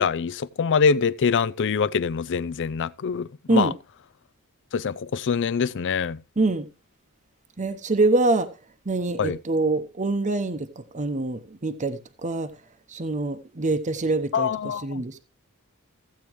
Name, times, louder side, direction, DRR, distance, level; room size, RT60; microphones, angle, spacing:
voice 1, 0.0-3.7 4.7-6.2 9.2-9.4 14.3-15.0, left 6 dB, 55° left, 0.4 m, -24 dB
voice 2, 6.4-6.7 7.6-8.5 8.9-12.5 12.9-15.2, right 2 dB, 35° right, 0.8 m, -25 dB
15.0 x 8.4 x 3.1 m
head